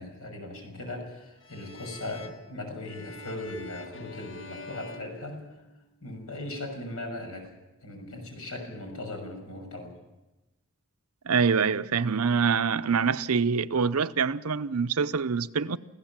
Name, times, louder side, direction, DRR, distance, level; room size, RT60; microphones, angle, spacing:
voice 1, 0.0-5.4 6.0-7.5 7.8-9.9, left 1 dB, 80° left, 6.4 m, -38 dB
sound 1, 1.4-6.0, left 3 dB, 60° left, 1.4 m, -46 dB
voice 2, 11.3-15.8, right 5 dB, 85° right, 0.7 m, -25 dB
26.5 x 16.0 x 7.4 m
head